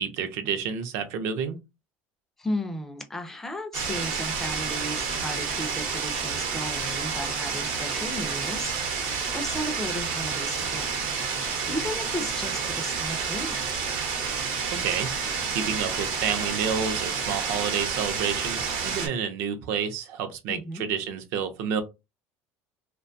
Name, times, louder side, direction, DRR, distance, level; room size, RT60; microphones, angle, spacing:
voice 1, 0.0-1.6 14.7-15.1 15.5-21.8, right 7 dB, 60° right, 0.5 m, -29 dB
voice 2, 2.4-9.0 9.3-11.1 11.7-13.6 20.5-20.8, left 1 dB, 5° left, 0.3 m, -35 dB
sound 1, 3.7-19.1, right 5 dB, 85° right, 0.8 m, -29 dB
2.4 x 2.2 x 2.6 m
cardioid pair, 175°, 5 cm